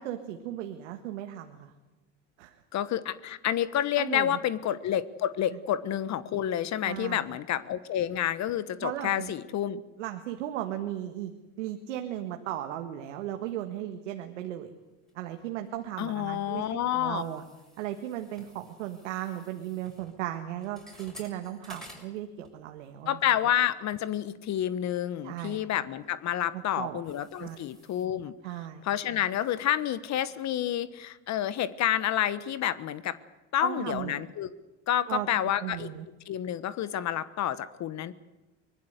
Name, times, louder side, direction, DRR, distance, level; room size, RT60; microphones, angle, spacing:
voice 1, 0.0-1.7 2.4-2.6 4.0-4.4 6.8-7.3 8.8-9.3 10.0-11.3 11.6-14.7 15.2-17.4 17.8-23.2 25.2-25.6 26.5-27.0 27.4-27.6 28.4-28.8 33.6-34.2 35.1-35.3 35.6-36.1, right 12 dB, 85° right, 5 dB, 1.7 m, -36 dB
voice 2, 2.7-9.8 16.0-17.2 23.1-28.3 28.8-33.2 33.5-34.5 34.9-35.9 36.3-38.1, left 11 dB, 50° left, 15 dB, 1.3 m, -29 dB
sound 1, 15.1-16.0 16.3-22.9 23.2-23.5 24.0-24.1 24.7-28.1, left 1 dB, ahead, 6.2 m, -54 dB
24.0 x 19.5 x 8.1 m, 1.1 s
supercardioid pair, 90°, 35 cm